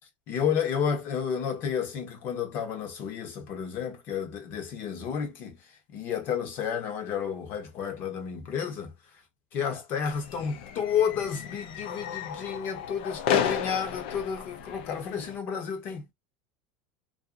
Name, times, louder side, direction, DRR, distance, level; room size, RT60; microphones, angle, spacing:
voice 1, 0.3-5.6 5.9-8.9 9.5-16.1, left 7 dB, 40° left, 1.0 m, -31 dB
sound 1, 10.0-15.4, left 8 dB, 70° left, 0.6 m, -33 dB
2.6 x 2.6 x 2.4 m
supercardioid pair, 160°, 6 cm